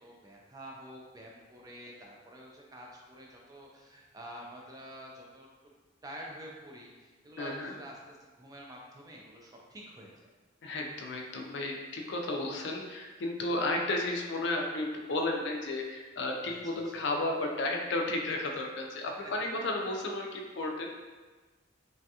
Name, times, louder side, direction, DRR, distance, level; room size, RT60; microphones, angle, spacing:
voice 1, 0.0-5.5 6.0-10.1 16.5-17.0, right 1 dB, 20° right, -2 dB, 0.3 m, -48 dB
voice 2, 7.4-7.8 10.6-20.9, left 2 dB, 65° left, 1 dB, 0.4 m, -33 dB
3.3 x 2.3 x 2.7 m, 1.3 s
head